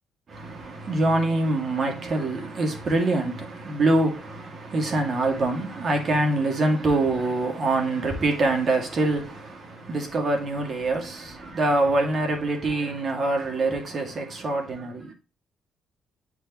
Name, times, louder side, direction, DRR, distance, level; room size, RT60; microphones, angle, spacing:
voice 1, 0.3-15.1, right 2 dB, 50° right, 2.2 m, -25 dB
10.0 x 4.8 x 3.0 m
cardioid pair, 90°, 0 cm